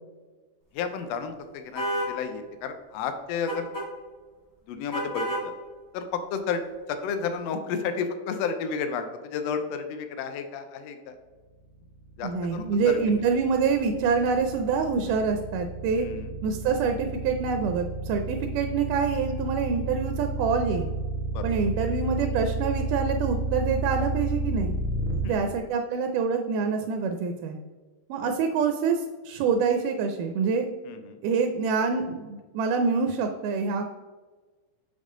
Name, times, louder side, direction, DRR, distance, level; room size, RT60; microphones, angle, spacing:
voice 1, 0.7-3.7 4.7-5.5 5.9-6.6 6.9-11.2 12.2-13.0 16.0-16.3 21.3-21.5 25.2-25.5 28.2-28.3 30.8-31.2, left 6 dB, 85° left, 8 dB, 1.5 m, -32 dB
sound 1, 1.7-2.1 3.5-3.9 4.9-5.5, equal, 25° left, 0.4 m, -29 dB
sound 2, 11.9-25.2, right 2 dB, 65° left, 1.2 m, -31 dB
voice 2, 12.2-16.1 16.4-20.9 21.4-24.7 25.2-27.6 28.1-30.7 31.2-33.9, right 5 dB, 85° right, 5 dB, 2.1 m, -26 dB
7.1 x 5.4 x 3.7 m, 1.3 s
omnidirectional pair, 3.6 m